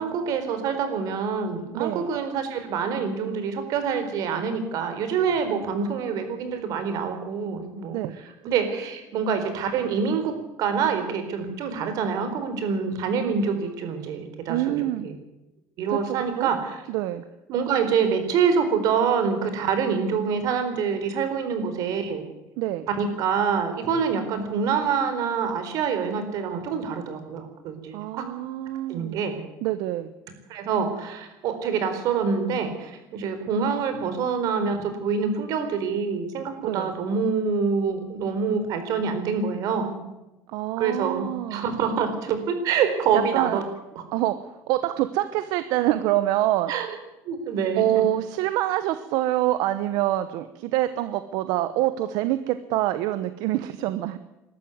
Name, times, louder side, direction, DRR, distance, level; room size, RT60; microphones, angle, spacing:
voice 1, 0.0-10.3 10.6-15.2 15.8-16.8 17.5-22.3 22.9-28.2 28.9-29.4 30.5-40.0 40.8-43.6 44.0-44.1 46.7-46.9 47.3-48.0, right 6 dB, 70° right, 8 dB, 4.3 m, -26 dB
voice 2, 1.7-2.1 7.9-8.1 14.5-15.1 15.9-16.5 16.9-17.2 22.6-22.9 27.9-29.2 29.6-30.1 36.6-36.9 40.5-41.6 43.1-43.6 44.1-46.7 47.8-54.2, right 14 dB, 90° right, 12 dB, 1.0 m, -26 dB
21.5 x 13.0 x 9.6 m, 0.98 s
cardioid pair, 130°, 6 cm